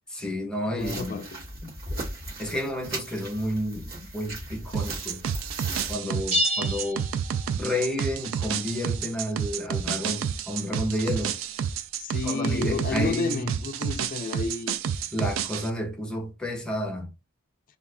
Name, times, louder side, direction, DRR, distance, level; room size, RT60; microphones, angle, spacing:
voice 1, 0.1-1.2 1.6-2.0 2.4-5.2 5.9-7.1 7.5-11.4 12.2-13.6 15.1-17.1, left 1 dB, 5° left, 0.7 m, -31 dB
voice 2, 0.7-1.5 12.0-14.7, left 4 dB, 40° left, 0.3 m, -31 dB
sound 1, 0.8-6.0, right 2 dB, 45° right, 1.1 m, -37 dB
sound 2, 4.7-15.7, right 8 dB, 65° right, 0.3 m, -30 dB
sound 3, 6.3-7.9, equal, 30° right, 1.1 m, -29 dB
2.4 x 2.3 x 3.4 m
head